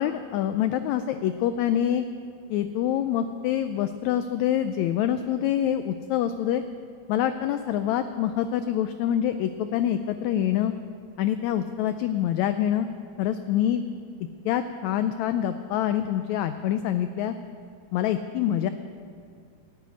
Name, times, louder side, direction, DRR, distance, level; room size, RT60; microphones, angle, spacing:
voice 1, 0.0-2.0 2.5-6.6 7.1-10.7 11.2-12.9 13.2-13.8 14.4-17.3 17.9-18.7, left 10 dB, 85° left, 10 dB, 1.6 m, -26 dB
13.5 x 8.3 x 9.5 m, 2.3 s
omnidirectional pair, 3.8 m